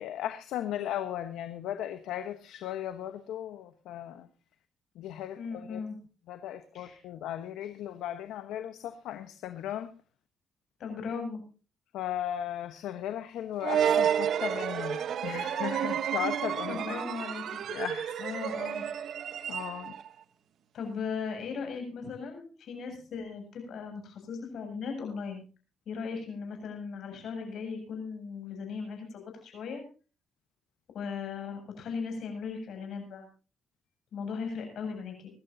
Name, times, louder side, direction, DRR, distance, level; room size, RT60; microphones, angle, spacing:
voice 1, 0.0-4.3 4.9-5.8 6.3-9.9 11.9-17.0 17.7-18.1 19.5-19.9, left 11 dB, 85° left, 9 dB, 1.1 m, -36 dB
voice 2, 5.4-6.0 6.7-7.0 10.8-11.4 16.7-17.6 18.2-18.8 20.7-25.4 25.9-29.8 30.9-33.3 34.1-35.3, left 5 dB, 70° left, 4 dB, 7.3 m, -37 dB
sound 1, 13.6-20.1, right 9 dB, 65° right, 1.0 m, -30 dB
25.0 x 12.0 x 2.7 m, 0.35 s
cardioid pair, 90°, 0 cm